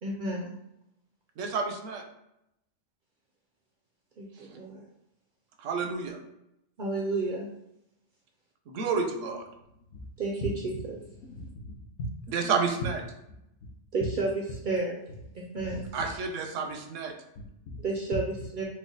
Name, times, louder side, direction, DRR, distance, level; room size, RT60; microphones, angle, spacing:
voice 1, 0.0-0.6 4.2-4.8 6.8-7.5 10.2-10.7 13.9-15.0 15.3-15.9 17.8-18.6, right 3 dB, 60° right, -1 dB, 0.5 m, -31 dB
voice 2, 1.4-2.1 4.5-4.6 5.6-6.2 8.7-9.4 12.3-13.0 15.9-17.1, right 5 dB, 80° right, 4 dB, 0.9 m, -30 dB
voice 3, 11.2-11.9 13.6-13.7 15.5-16.1 17.4-17.8, left 1 dB, 70° left, 2 dB, 0.9 m, -43 dB
3.3 x 2.2 x 3.8 m, 0.83 s
omnidirectional pair, 1.3 m